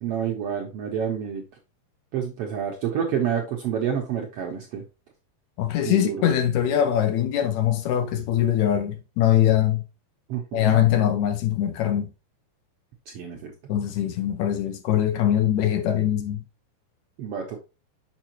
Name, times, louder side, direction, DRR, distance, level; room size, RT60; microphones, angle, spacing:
voice 1, 0.0-1.4 2.1-4.8 5.8-6.3 10.3-10.8 13.1-13.5 17.2-17.6, right 8 dB, 70° right, 1.4 m, -28 dB
voice 2, 5.6-9.8 10.5-12.1 13.7-16.4, left 11 dB, 75° left, 1.9 m, -22 dB
6.6 x 5.4 x 2.9 m
omnidirectional pair, 3.6 m